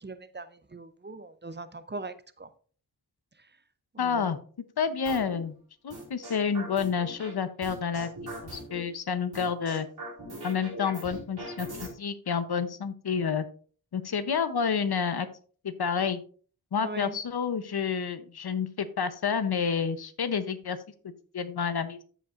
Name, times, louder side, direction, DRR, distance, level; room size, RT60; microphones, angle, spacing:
voice 1, 0.0-2.5 3.9-4.3 16.8-17.2, right 3 dB, 30° right, 0.6 m, -40 dB
voice 2, 4.0-4.4 4.8-5.6 5.8-8.1 8.5-9.9 10.4-13.4 13.9-15.3 15.6-16.2 16.7-20.8 21.3-22.0, left 6 dB, 90° left, 0.8 m, -29 dB
sound 1, 5.1-5.4 5.9-7.3 7.6-8.8 9.3-11.9, right 1 dB, 90° right, 3.8 m, -40 dB
14.0 x 5.2 x 2.5 m
wide cardioid pair, 85°, 37 cm